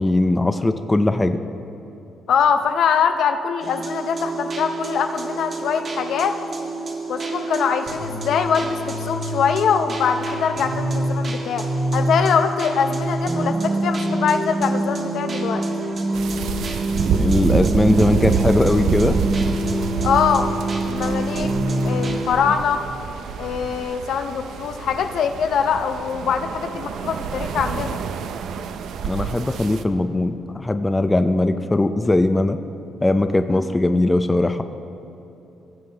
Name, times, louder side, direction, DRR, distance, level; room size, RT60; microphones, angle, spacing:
voice 1, 0.0-1.4 17.1-19.2 29.0-32.6 33.0-34.6, left 2 dB, 15° left, 9 dB, 0.5 m, -19 dB
voice 2, 2.3-6.4 7.1-15.6 20.0-20.5 20.8-21.5 21.8-22.8 23.4-28.0 33.5-33.7, left 7 dB, 70° left, 7 dB, 0.6 m, -23 dB
sound 1, 3.6-22.4, right 1 dB, 45° right, 1.6 m, -26 dB
sound 2, 16.1-29.8, right 6 dB, 75° right, 0.5 m, -27 dB
18.5 x 7.4 x 3.4 m, 3.0 s
cardioid pair, 90°, 0 cm